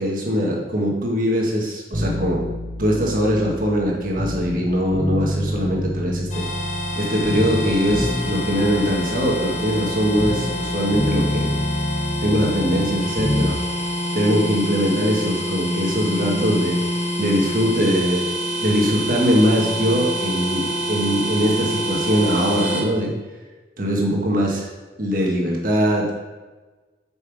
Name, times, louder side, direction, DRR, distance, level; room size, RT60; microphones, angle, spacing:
voice 1, 0.0-2.4 2.8-6.5 6.9-11.5 12.2-13.6 14.1-16.8 17.2-18.3 18.6-23.1 23.8-24.7 25.0-26.1, equal, 50° right, -2 dB, 1.6 m, -21 dB
sound 1, 1.9-4.6 4.9-7.0 7.2-10.7 10.9-13.5 13.8-13.9, left 1 dB, 15° right, 1.4 m, -27 dB
sound 2, 6.3-22.8, equal, 45° left, 1.3 m, -27 dB
7.8 x 5.7 x 4.8 m, 1.3 s
head